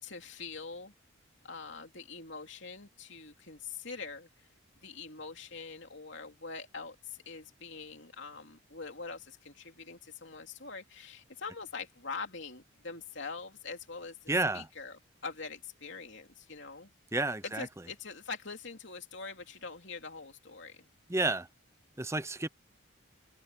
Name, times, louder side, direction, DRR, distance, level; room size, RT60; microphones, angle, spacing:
voice 1, 0.0-0.9 1.4-4.3 4.8-16.9 17.4-20.9, left 4 dB, 60° left, 3.3 m, -44 dB
voice 2, 14.3-14.7 17.1-17.7 21.1-21.5 22.0-22.5, right 2 dB, 15° right, 0.7 m, -30 dB
head